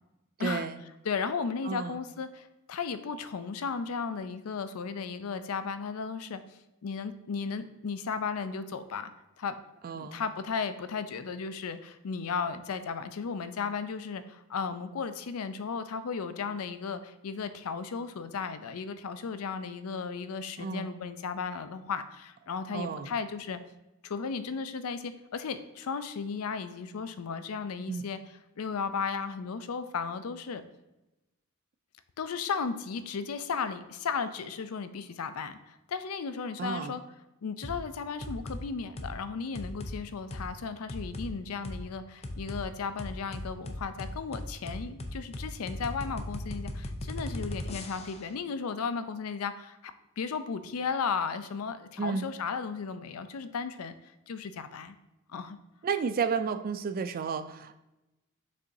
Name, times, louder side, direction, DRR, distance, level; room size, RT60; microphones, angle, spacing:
voice 1, 0.4-0.8 1.6-2.0 9.8-10.2 20.6-20.9 22.7-23.1 27.9-28.0 36.6-37.0 52.0-52.3 55.8-57.8, right 5 dB, 45° right, 10 dB, 0.3 m, -32 dB
voice 2, 1.0-6.4 6.8-9.1 9.4-9.5 9.9-23.6 24.0-28.2 28.6-30.6 32.2-37.0 37.4-53.9 54.3-55.0 55.3-55.6, left 5 dB, 85° left, 11 dB, 0.5 m, -35 dB
sound 1, 37.6-37.8 38.2-38.6 39.0-39.2 39.5-39.9 40.3-40.4 40.9-41.3 41.6-41.8 42.2-42.6 43.0-48.3, left 1 dB, 30° left, 0.5 m, -37 dB
6.7 x 5.4 x 2.7 m, 0.97 s
head